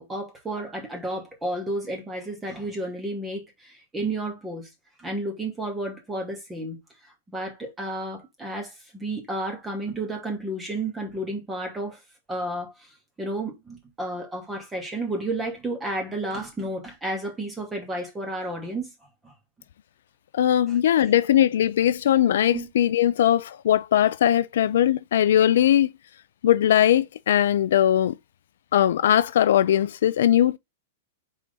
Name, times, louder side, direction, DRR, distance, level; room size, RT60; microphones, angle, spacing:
voice 1, 0.0-4.7 5.0-12.0 12.3-12.9 13.2-18.9 19.2-19.3 20.7-20.8 22.5-22.7, right 1 dB, 15° right, 2.4 m, -32 dB
voice 2, 20.3-25.9 26.4-28.1 28.7-30.6, left 11 dB, 70° left, 0.4 m, -20 dB
4.6 x 4.2 x 5.2 m
hypercardioid pair, 120°, 0 cm